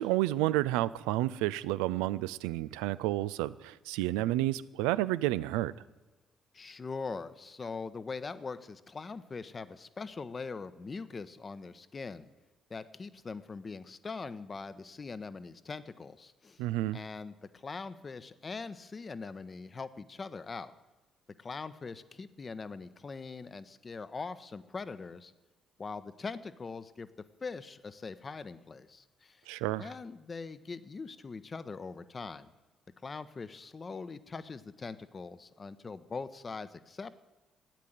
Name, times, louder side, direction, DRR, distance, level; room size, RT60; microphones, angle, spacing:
voice 1, 0.0-5.7 16.6-17.0 29.5-29.9, right 16 dB, 70° right, 17 dB, 0.4 m, -30 dB
voice 2, 6.5-12.3 12.7-16.6 16.9-20.7 21.4-25.3 25.8-29.4 29.8-32.5 33.0-37.2, left 4 dB, 35° left, 14 dB, 0.9 m, -42 dB
13.5 x 9.8 x 9.3 m, 1.2 s
figure-of-eight pair, 40°, 0 cm